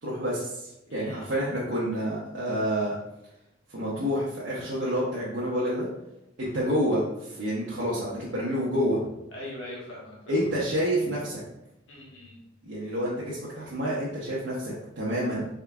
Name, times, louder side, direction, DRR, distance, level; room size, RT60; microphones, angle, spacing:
voice 1, 0.0-2.9 3.7-5.9 6.4-9.0 10.3-11.4 12.6-15.5, equal, 70° right, -7 dB, 0.8 m, -28 dB
voice 2, 0.9-1.3 9.3-10.5 11.9-12.4, left 1 dB, 85° left, -5 dB, 1.2 m, -42 dB
3.8 x 3.6 x 2.3 m, 0.87 s
head